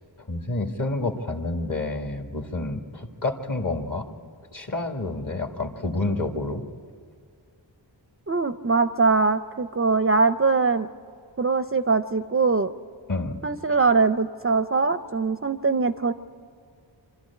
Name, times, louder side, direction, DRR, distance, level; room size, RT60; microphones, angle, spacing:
voice 1, 0.3-4.1 4.5-6.6 13.1-13.4, left 2 dB, 45° left, 4 dB, 1.8 m, -29 dB
voice 2, 8.3-10.9 11.4-12.7 13.4-16.1, right 4 dB, 30° right, 10 dB, 0.5 m, -22 dB
25.5 x 13.0 x 8.4 m, 2.3 s
wide cardioid pair, 115°, 46 cm